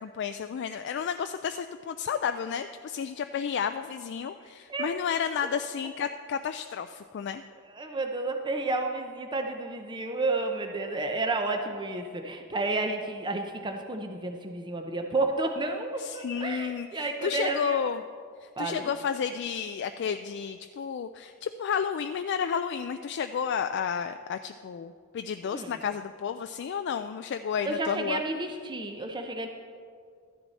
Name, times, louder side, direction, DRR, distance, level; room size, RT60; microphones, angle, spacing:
voice 1, 0.0-7.4 16.0-18.0 18.4-28.2, left 7 dB, 55° left, 8 dB, 0.3 m, -32 dB
voice 2, 7.7-17.8 18.6-18.9 25.4-25.8 27.6-29.5, right 2 dB, 20° right, 4 dB, 0.6 m, -31 dB
13.0 x 10.0 x 4.1 m, 2.1 s
head